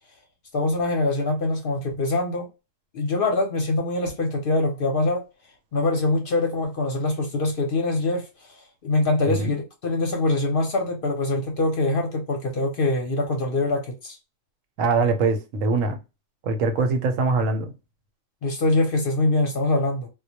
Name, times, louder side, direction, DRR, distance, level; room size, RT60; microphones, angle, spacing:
voice 1, 0.5-2.5 2.9-5.2 5.7-8.6 8.8-14.2 18.4-20.1, left 2 dB, 55° left, 0.7 m, -24 dB
voice 2, 14.8-16.0 16.4-17.7, right 3 dB, 85° right, 1.0 m, -23 dB
2.2 x 2.1 x 2.7 m
omnidirectional pair, 1.3 m